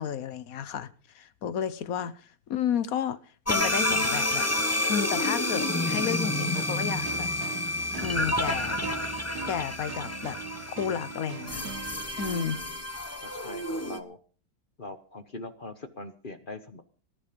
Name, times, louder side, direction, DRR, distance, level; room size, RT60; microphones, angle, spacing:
voice 1, 0.0-3.2 3.5-4.5 4.9-7.3 8.0-8.8 9.5-10.4 10.7-11.6 12.2-12.6, left 8 dB, 55° left, 1.2 m, -32 dB
sound 1, 3.5-14.0, left 1 dB, 15° left, 0.6 m, -29 dB
sound 2, 6.5-12.5, right 6 dB, 55° right, 1.6 m, -41 dB
voice 2, 13.2-14.2 14.8-16.8, left 2 dB, 35° left, 1.0 m, -42 dB
18.5 x 11.5 x 5.3 m
omnidirectional pair, 2.1 m